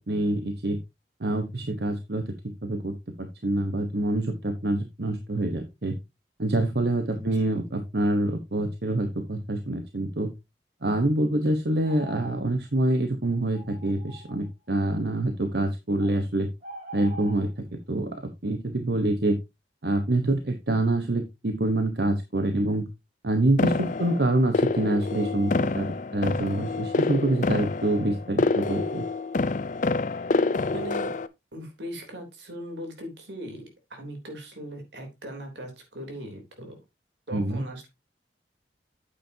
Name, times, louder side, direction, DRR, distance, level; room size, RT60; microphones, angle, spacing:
voice 1, 0.1-0.8 1.2-2.3 2.6-2.9 3.2-5.9 6.4-10.3 10.8-16.5 16.9-17.5 17.9-18.1 18.4-19.4 19.8-22.9 23.2-29.1 37.3-37.6, right 1 dB, 65° right, 6 dB, 1.1 m, -26 dB
voice 2, 7.2-7.6 30.7-31.2 31.5-36.8 37.3-37.9, equal, 85° right, 3 dB, 3.4 m, -39 dB
sound 1, 11.8-12.5 12.8-13.0 13.5-14.5 16.0-16.2 16.6-17.5, right 2 dB, 45° right, 1.9 m, -43 dB
sound 2, 23.6-31.3, left 3 dB, 45° left, 0.5 m, -27 dB
9.1 x 8.5 x 2.8 m, 0.22 s
head